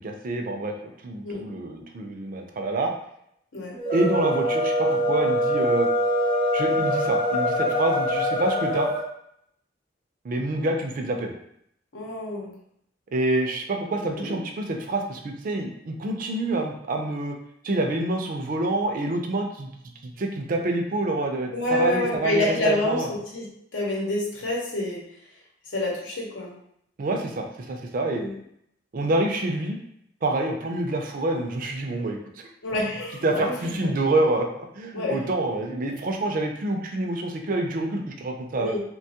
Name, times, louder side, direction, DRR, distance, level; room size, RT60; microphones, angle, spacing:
voice 1, 0.0-0.7 1.0-2.9 3.9-5.9 6.5-8.9 10.2-11.3 13.1-17.4 17.6-19.7 20.2-23.1 27.0-28.2 28.9-29.8 30.2-32.2 33.2-38.8, right 2 dB, 45° right, 3 dB, 0.4 m, -27 dB
sound 1, 3.8-9.1, equal, 30° left, 0.5 m, -24 dB
voice 2, 11.9-12.5 14.0-14.4 21.5-25.0 25.7-26.6 28.2-28.4 32.6-33.5 33.8-34.1 34.9-35.2 38.5-38.8, left 1 dB, 80° left, -2 dB, 0.8 m, -28 dB
3.0 x 2.2 x 2.8 m, 0.73 s
head